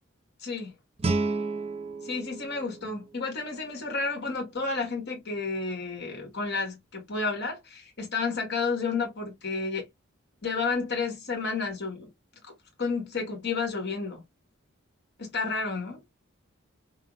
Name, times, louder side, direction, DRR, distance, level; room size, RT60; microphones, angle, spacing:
voice 1, 0.4-0.7 2.0-9.9 10.4-12.1 12.8-14.2 15.2-16.0, left 4 dB, 55° left, 1.5 m, -31 dB
Guitar, 1.0-3.8, right 3 dB, 30° right, 0.4 m, -32 dB
5.6 x 2.0 x 2.3 m
head